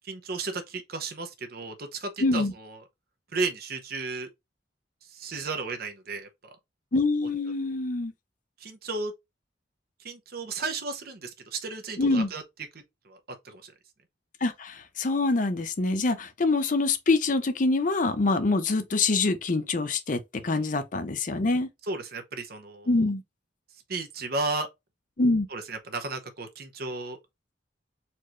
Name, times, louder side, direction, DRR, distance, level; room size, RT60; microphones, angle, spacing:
voice 1, 0.0-2.8 3.3-4.3 5.1-6.3 8.6-9.1 10.0-12.4 12.7-13.2 13.4-13.7 20.4-20.6 21.9-22.9 23.9-24.7 25.5-27.2, right 3 dB, 55° right, 0.8 m, -34 dB
voice 2, 2.2-2.5 6.9-8.1 12.0-12.3 14.4-21.7 22.9-23.2 25.2-25.5, left 3 dB, 45° left, 0.6 m, -25 dB
4.3 x 3.1 x 2.4 m
head